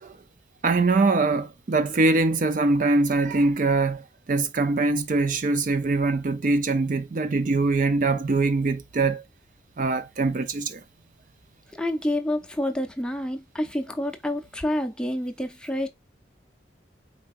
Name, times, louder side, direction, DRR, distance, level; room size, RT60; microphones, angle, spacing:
voice 1, 0.6-9.2 9.8-10.8, right 3 dB, 45° right, 0.4 m, -23 dB
voice 2, 11.7-15.9, left 1 dB, 5° left, 0.6 m, -28 dB
4.5 x 4.1 x 2.4 m
head